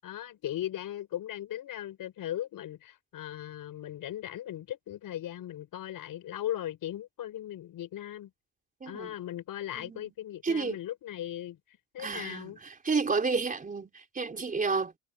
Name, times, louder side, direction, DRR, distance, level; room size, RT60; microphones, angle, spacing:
voice 1, 0.0-8.3 8.9-11.6 11.9-12.6, left 12 dB, 50° left, 5.3 m, -38 dB
voice 2, 8.8-9.1 9.8-10.1 10.4-10.8 12.0-14.9, right 4 dB, 20° right, 3.9 m, -31 dB
cardioid pair, 150°, 42 cm